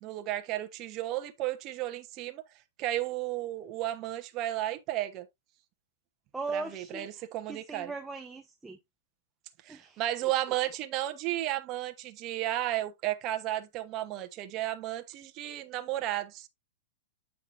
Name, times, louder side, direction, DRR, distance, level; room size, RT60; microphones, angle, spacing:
voice 1, 0.0-2.4 2.8-5.3 6.5-7.9 9.6-16.5, right 14 dB, 35° right, 1.0 m, -33 dB
voice 2, 6.3-7.1 7.5-8.8 9.7-10.3, right 4 dB, 5° right, 0.7 m, -39 dB
8.5 x 5.8 x 2.6 m
hypercardioid pair, 140°, 0 cm